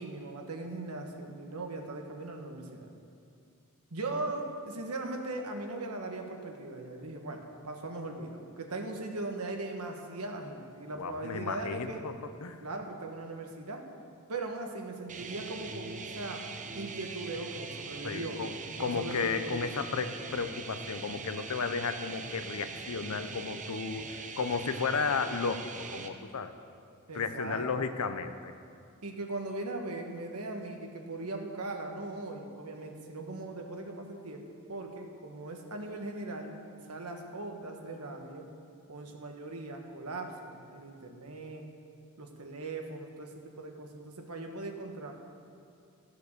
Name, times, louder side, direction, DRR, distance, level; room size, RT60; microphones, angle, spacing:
voice 1, 0.0-2.9 3.9-12.1 12.6-13.9 14.3-16.4 16.7-18.4 18.7-19.6 27.1-27.7 29.0-34.4 34.7-36.6 36.9-38.5 38.9-41.6 42.2-45.1, right 2 dB, 80° right, 3 dB, 1.3 m, -39 dB
voice 2, 11.0-12.1 12.4-12.6 18.0-18.5 18.8-26.5 27.1-28.5, left 5 dB, 75° left, 9 dB, 0.7 m, -33 dB
sound 1, 15.1-26.1, right 4 dB, 35° right, 0.7 m, -42 dB
14.0 x 6.6 x 6.7 m, 2.4 s
head